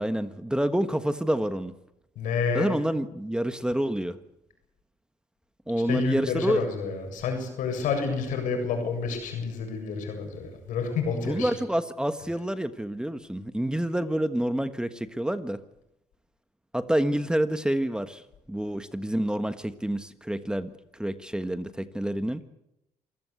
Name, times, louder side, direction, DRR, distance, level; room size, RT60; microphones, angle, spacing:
voice 1, 0.0-1.7 2.5-4.2 5.7-6.6 11.1-15.6 16.7-18.2 18.5-22.4, right 1 dB, 5° right, 10 dB, 1.4 m, -28 dB
voice 2, 2.2-2.8 5.9-11.5, left 5 dB, 80° left, 5 dB, 7.4 m, -29 dB
27.0 x 16.0 x 8.3 m, 0.85 s
cardioid pair, 75°, 13 cm